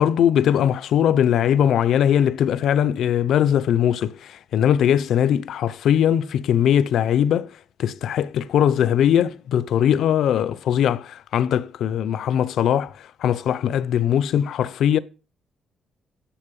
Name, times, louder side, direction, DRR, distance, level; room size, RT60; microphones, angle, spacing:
voice 1, 0.0-7.5 7.8-12.9 13.2-15.0, left 9 dB, 70° left, 0.6 m, -20 dB
10.0 x 7.6 x 5.3 m
cardioid pair, 165°, 0 cm